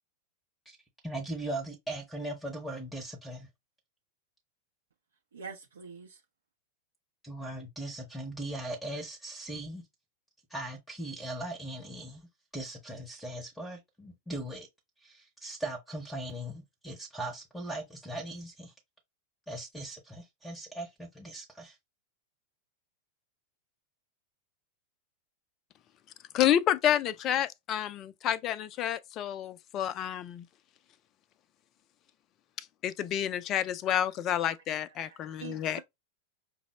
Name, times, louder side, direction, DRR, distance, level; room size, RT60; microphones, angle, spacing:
voice 1, 1.0-3.5 7.2-9.8 10.5-12.3 12.5-14.7 15.0-18.7 19.5-21.8, right 1 dB, ahead, 0.8 m, -39 dB
voice 2, 5.3-6.2 35.1-35.8, right 5 dB, 70° right, 0.5 m, -45 dB
voice 3, 26.3-30.4 32.6-35.8, left 10 dB, 35° left, 0.3 m, -29 dB
5.3 x 2.0 x 2.9 m
figure-of-eight pair, 90°, 0 cm